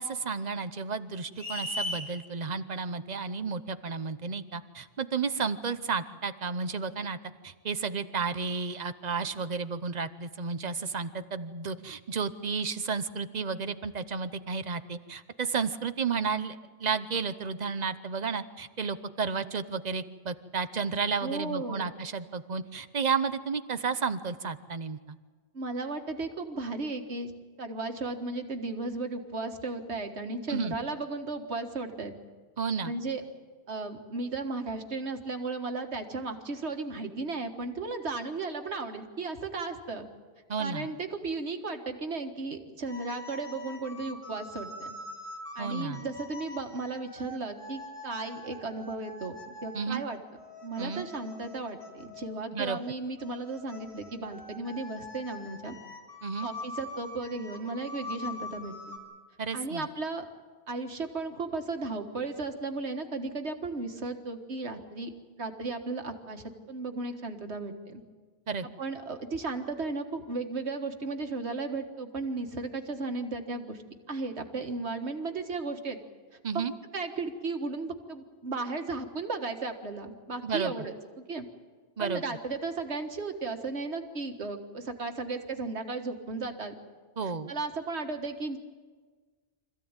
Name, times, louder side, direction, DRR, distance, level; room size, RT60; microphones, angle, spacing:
voice 1, 0.0-7.2 7.4-25.0 30.5-30.7 32.6-32.9 40.5-40.9 45.6-46.0 49.7-50.0 50.8-51.0 52.5-52.8 56.2-56.5 59.4-59.9 68.5-68.7 76.4-76.7 80.4-80.7 82.0-82.2 87.2-87.5, right 5 dB, 45° right, 12 dB, 0.9 m, -32 dB
sound 1, 1.4-2.1, left 1 dB, 40° left, 4.2 m, -33 dB
voice 2, 21.2-21.9 25.5-27.3 27.6-32.2 32.8-33.2 33.7-40.1 40.6-45.0 45.6-50.2 50.6-55.8 56.4-59.0 59.5-60.3 60.7-65.1 65.4-68.0 68.8-73.8 74.1-76.0 76.5-76.6 76.9-81.5 82.0-86.7 87.2-88.6, right 3 dB, 90° right, 5 dB, 1.9 m, -35 dB
sound 2, 42.9-52.4 53.2-59.0, left 2 dB, 20° left, 3.3 m, -44 dB
25.5 x 15.0 x 8.9 m, 1.5 s
omnidirectional pair, 1.1 m